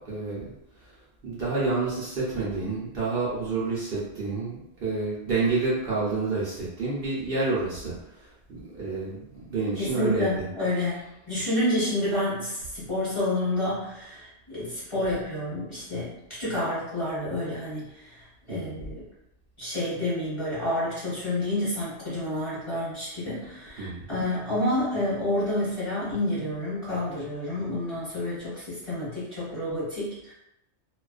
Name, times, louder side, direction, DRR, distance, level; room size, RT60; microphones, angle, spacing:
voice 1, 0.0-0.5 1.2-7.9 8.5-10.3 18.5-18.7 23.8-24.1, right 3 dB, 55° right, -7 dB, 0.8 m, -29 dB
voice 2, 9.8-17.9 18.5-19.0 19.6-30.3, left 1 dB, 25° left, -10 dB, 1.0 m, -29 dB
2.3 x 2.2 x 2.4 m, 0.83 s
omnidirectional pair, 1.2 m